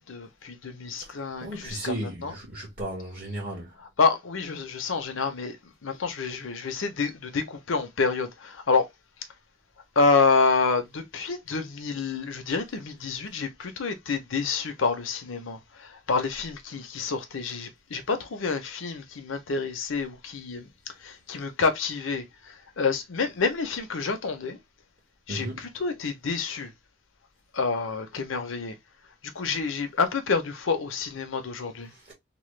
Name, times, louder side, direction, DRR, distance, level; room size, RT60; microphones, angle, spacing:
voice 1, 0.1-1.9 2.2-2.3 4.0-5.6 5.8-8.9 10.0-20.7 21.0-24.6 25.3-26.7 27.5-28.7 29.3-31.9, left 4 dB, 75° left, 0.7 m, -28 dB
voice 2, 1.0-3.8 25.3-25.6 31.9-32.1, right 1 dB, 45° right, 1.1 m, -35 dB
2.9 x 2.2 x 3.2 m
head